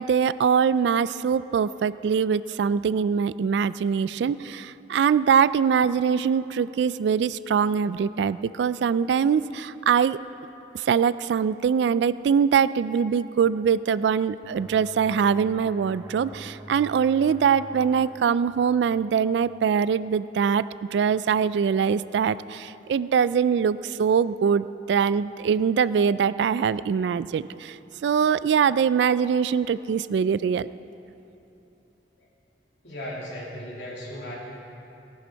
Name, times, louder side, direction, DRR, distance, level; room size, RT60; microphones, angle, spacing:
voice 1, 0.0-10.2 10.7-20.6 20.9-27.8 28.0-30.7, right 7 dB, 75° right, 16 dB, 0.3 m, -23 dB
sound 1, 14.4-19.8, equal, 15° right, 1.5 m, -46 dB
voice 2, 32.8-34.4, equal, 80° left, -4 dB, 3.0 m, -36 dB
18.0 x 11.5 x 4.5 m, 2.9 s
head